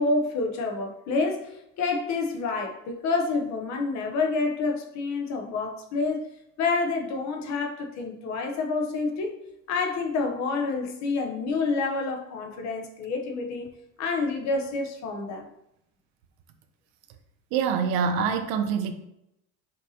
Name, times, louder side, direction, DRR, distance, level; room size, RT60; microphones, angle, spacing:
voice 1, 0.0-6.2 6.6-9.4 9.7-13.7 14.0-15.5 18.1-18.2, left 3 dB, 50° left, 0.7 m, -28 dB
voice 2, 17.5-18.9, right 6 dB, 75° right, 0.6 m, -25 dB
5.2 x 2.7 x 2.7 m
cardioid pair, 145°, 36 cm